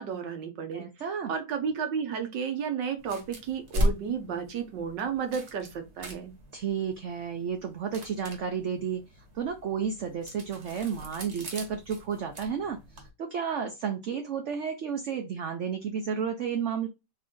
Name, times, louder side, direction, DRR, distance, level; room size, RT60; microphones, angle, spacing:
voice 1, 0.0-0.8 1.3-6.3, right 6 dB, 80° right, 6 dB, 1.7 m, -32 dB
voice 2, 0.7-1.3 6.5-9.0 9.3-16.9, right 7 dB, 60° right, 5 dB, 0.7 m, -32 dB
sound 1, 3.0-13.1, equal, 45° right, 1.2 m, -37 dB
4.2 x 2.8 x 3.6 m, 0.23 s
omnidirectional pair, 1.9 m